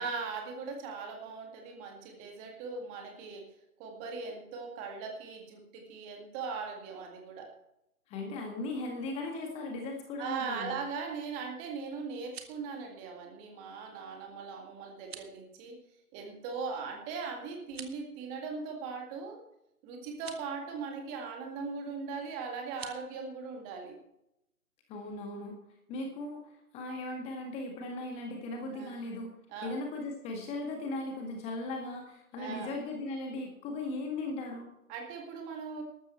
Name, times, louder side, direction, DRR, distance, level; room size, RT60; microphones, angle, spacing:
voice 1, 0.0-3.5 3.8-7.5 10.2-15.8 16.1-19.4 19.8-24.0 27.9-28.0 28.7-29.0 29.5-29.8 32.4-32.8 34.9-35.8, right 5 dB, 15° right, 3 dB, 1.9 m, -39 dB
voice 2, 8.1-10.8 24.9-25.5 25.9-29.3 29.6-34.7, left 2 dB, 15° left, 2 dB, 1.7 m, -38 dB
sound 1, 12.1-12.7 15.0-15.4 17.6-18.1 20.1-20.5 22.7-23.0, right 7 dB, 40° right, 1.8 m, -47 dB
13.5 x 13.0 x 4.4 m, 0.82 s
figure-of-eight pair, 140°, 45 cm